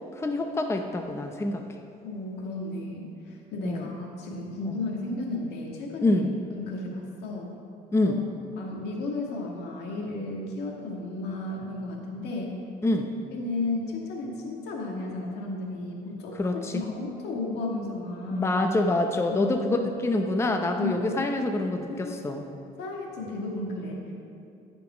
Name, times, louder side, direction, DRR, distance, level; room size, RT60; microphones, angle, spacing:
voice 1, 0.1-1.6 3.6-3.9 4.6-4.7 6.0-6.3 7.9-8.2 12.8-13.1 16.3-16.8 18.3-22.5, left 2 dB, 15° left, 4 dB, 0.6 m, -26 dB
voice 2, 2.0-6.2 6.5-7.5 8.0-8.1 8.6-12.6 13.3-16.4 16.7-18.5 19.3-19.9 20.8-21.1 21.9-22.1 22.8-24.0, left 2 dB, 80° left, 0 dB, 1.8 m, -33 dB
14.5 x 5.2 x 4.9 m, 2.6 s
cardioid pair, 110°, 17 cm